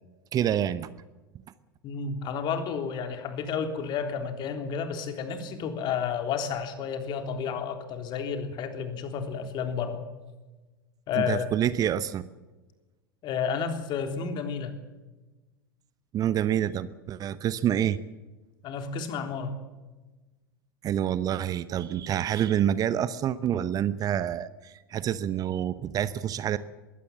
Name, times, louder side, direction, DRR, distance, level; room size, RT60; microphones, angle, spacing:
voice 1, 0.3-0.9 11.1-12.3 16.1-18.0 20.8-26.6, right 10 dB, 30° right, 16 dB, 0.9 m, -27 dB
voice 2, 1.8-10.0 11.1-11.5 13.2-14.7 18.6-19.5, left 6 dB, 40° left, 7 dB, 3.3 m, -31 dB
22.0 x 17.0 x 7.6 m, 1.2 s
figure-of-eight pair, 85°, 12 cm